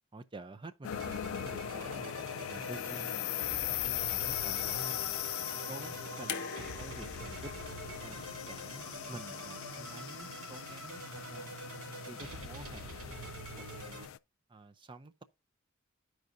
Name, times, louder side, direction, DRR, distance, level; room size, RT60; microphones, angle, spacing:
voice 1, 0.1-2.1 2.5-7.5 8.0-8.2 8.5-11.5 12.1-13.3 13.8-14.1 14.5-15.2, right 2 dB, 25° right, 0.5 m, -49 dB
sound 1, 0.8-14.2, left 12 dB, 65° left, 0.3 m, -39 dB
sound 2, 0.9-14.1, right 2 dB, 85° right, 2.4 m, -45 dB
sound 3, 6.3-9.4 10.6-10.7, left 6 dB, 50° left, 0.8 m, -44 dB
13.0 x 4.7 x 2.5 m
head